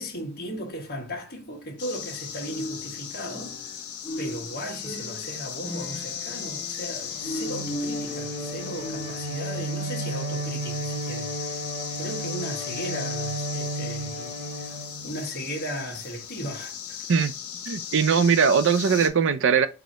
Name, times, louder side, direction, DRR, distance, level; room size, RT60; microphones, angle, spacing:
voice 1, 0.0-3.6 4.2-11.6 11.9-14.7 15.0-17.0, equal, 45° left, 1.1 m, -36 dB
sound 1, 1.8-19.1, left 8 dB, 80° left, 1.0 m, -37 dB
sound 2, 2.4-9.3, equal, 15° left, 1.2 m, -37 dB
Bowed string instrument, 7.0-15.5, right 2 dB, 75° right, 1.6 m, -34 dB
voice 2, 17.7-19.7, right 6 dB, 60° right, 0.5 m, -20 dB
4.8 x 2.6 x 4.1 m
head